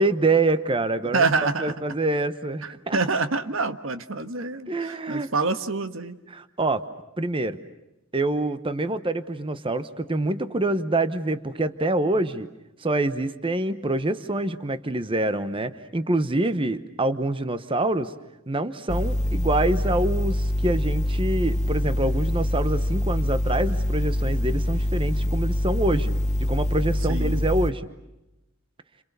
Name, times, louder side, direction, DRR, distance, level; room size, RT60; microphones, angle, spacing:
voice 1, 0.0-1.3 1.6-3.0 4.7-5.3 6.3-6.8 7.2-7.6 8.1-12.5 12.8-18.1 18.5-26.1 26.4-27.9, right 2 dB, 25° right, 11 dB, 1.0 m, -26 dB
voice 2, 1.1-1.7 2.6-6.2 27.1-27.4, right 3 dB, 70° right, 9 dB, 1.5 m, -26 dB
sound 1, 18.9-27.7, left 1 dB, 35° left, 1.0 m, -25 dB
30.0 x 27.0 x 6.8 m, 0.93 s
head